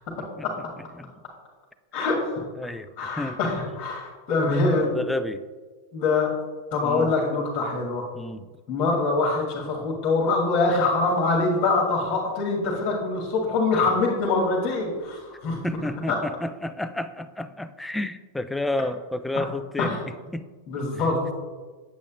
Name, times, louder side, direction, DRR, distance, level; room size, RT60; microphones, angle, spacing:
voice 1, 1.9-2.4 3.0-5.0 5.9-6.3 6.7-8.1 8.7-15.6 19.4-19.5 19.8-20.0 20.7-21.3, left 3 dB, 35° left, -3 dB, 1.7 m, -24 dB
voice 2, 2.6-2.9 3.2-3.4 4.4-5.5 6.8-7.1 8.1-8.5 15.6-20.0 20.3-20.5 20.8-20.9, left 1 dB, 5° left, 11 dB, 0.4 m, -31 dB
8.3 x 8.1 x 2.4 m, 1.4 s
figure-of-eight pair, 90°, 0 cm